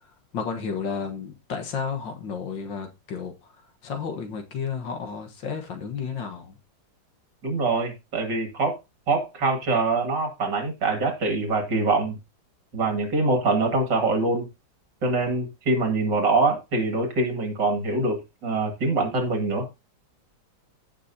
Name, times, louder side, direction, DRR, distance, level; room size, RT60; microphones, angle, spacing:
voice 1, 0.3-3.3 3.8-6.6, left 6 dB, 70° left, 2.1 m, -32 dB
voice 2, 7.4-8.8 9.1-12.2 12.7-14.5 15.0-19.7, right 3 dB, 65° right, 3.0 m, -24 dB
15.5 x 6.1 x 2.8 m
omnidirectional pair, 2.1 m